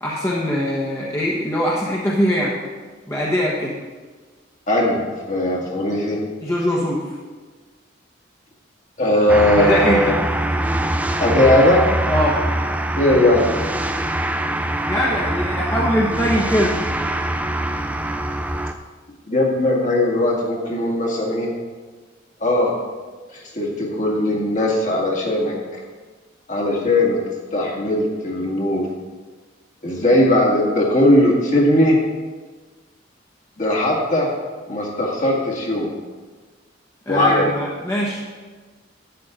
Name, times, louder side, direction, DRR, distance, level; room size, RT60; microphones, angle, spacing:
voice 1, 0.0-2.5 3.1-3.7 6.4-7.2 9.6-10.2 12.1-12.4 14.9-16.7 37.1-38.2, equal, 15° left, -5 dB, 1.2 m, -22 dB
voice 2, 4.7-6.2 9.0-10.2 11.2-11.9 13.0-13.5 19.3-21.5 22.4-22.7 23.3-25.5 26.5-27.2 27.5-28.9 29.8-32.0 33.6-34.3 34.7-35.9 37.1-37.5, left 1 dB, 40° left, -3 dB, 2.1 m, -18 dB
sound 1, 9.3-18.7, right 1 dB, 10° right, 0.4 m, -23 dB
11.5 x 8.6 x 3.8 m, 1.3 s
head